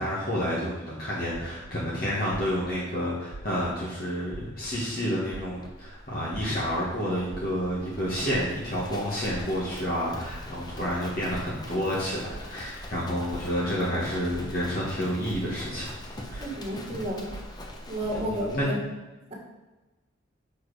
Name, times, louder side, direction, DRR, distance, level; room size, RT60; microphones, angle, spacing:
voice 1, 0.0-15.9 16.3-16.5 18.1-18.7, equal, 45° left, -7 dB, 1.6 m, -29 dB
sound 1, 1.3-1.7 2.3-2.7 3.3-3.7 4.3-4.7 5.3-5.7 6.3-6.7 7.3-7.7 8.3-8.7 9.3-9.7 10.3-10.7 11.3-11.7 12.3-12.7 13.3-13.7 14.3-14.7 15.3-15.7 16.3-16.7 17.3-17.7 18.2-18.3, right 3 dB, 85° right, 0.7 m, -42 dB
Livestock farm animals working animals, 5.6-18.6, left 1 dB, 20° left, 0.8 m, -43 dB
voice 2, 16.4-17.3 17.9-18.8, equal, 30° right, -4 dB, 1.8 m, -31 dB
7.1 x 4.7 x 4.9 m, 1.1 s
head